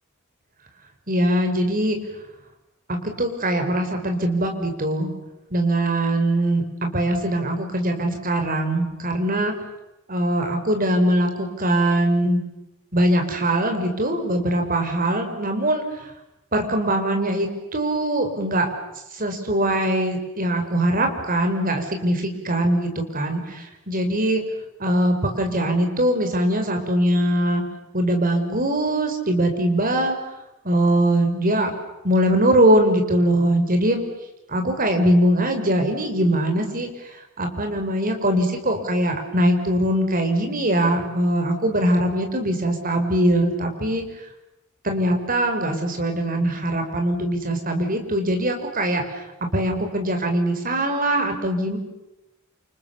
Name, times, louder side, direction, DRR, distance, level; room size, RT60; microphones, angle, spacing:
voice 1, 1.1-2.0 2.9-5.1 5.5-9.5 10.1-12.4 12.9-15.8 16.5-18.7 19.1-24.4 24.8-27.6 27.9-30.2 30.6-31.7 32.0-34.0 34.5-36.9 37.4-44.0 44.8-49.2 49.5-51.8, right 1 dB, 40° right, 5 dB, 5.2 m, -22 dB
29.0 x 27.5 x 7.2 m, 0.93 s
head